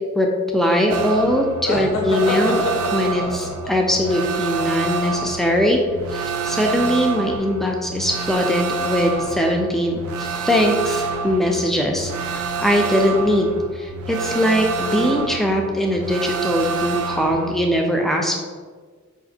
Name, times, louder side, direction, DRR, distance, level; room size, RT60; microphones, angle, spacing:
voice 1, 0.1-2.7 2.9-5.8 6.1-18.4, equal, ahead, 1 dB, 0.3 m, -21 dB
sound 1, 0.9-17.5, right 4 dB, 75° right, 0.4 m, -28 dB
sound 2, 1.6-5.3, left 1 dB, 85° left, 0.7 m, -27 dB
4.9 x 2.5 x 2.7 m, 1.5 s
head